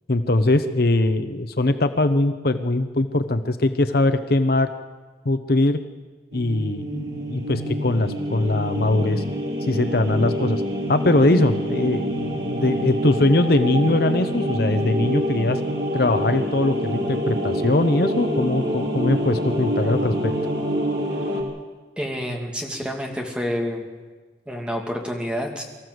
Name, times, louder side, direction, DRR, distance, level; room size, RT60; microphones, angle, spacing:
voice 1, 0.1-4.7 5.2-5.8 6.3-9.2 9.7-10.6 10.9-15.6 15.9-20.3, left 2 dB, 55° left, 10 dB, 0.9 m, -21 dB
sound 1, 6.3-21.4, equal, 65° right, 4.0 m, -26 dB
voice 2, 22.0-23.8 24.5-25.6, equal, 5° right, 1 dB, 2.7 m, -28 dB
24.0 x 14.5 x 7.9 m, 1.3 s
head